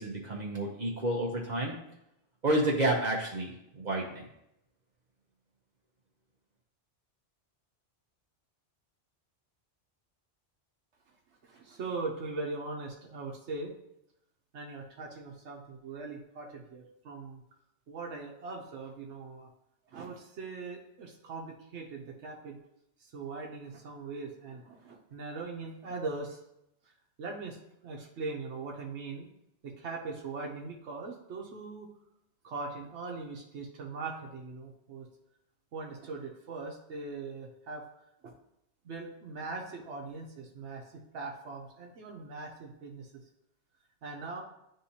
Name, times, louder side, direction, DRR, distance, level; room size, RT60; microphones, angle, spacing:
voice 1, 0.0-1.8 2.4-4.3, right 1 dB, 45° right, -3 dB, 0.9 m, -30 dB
voice 2, 11.4-13.7 14.5-17.4 17.9-19.5 19.9-22.6 23.0-26.4 27.2-27.6 27.8-29.3 29.6-31.9 32.4-35.1 35.7-37.8 38.2-38.3 38.8-43.2 44.0-44.4, right 3 dB, 85° right, 0 dB, 1.1 m, -40 dB
9.9 x 3.6 x 2.8 m, 0.82 s
omnidirectional pair, 1.1 m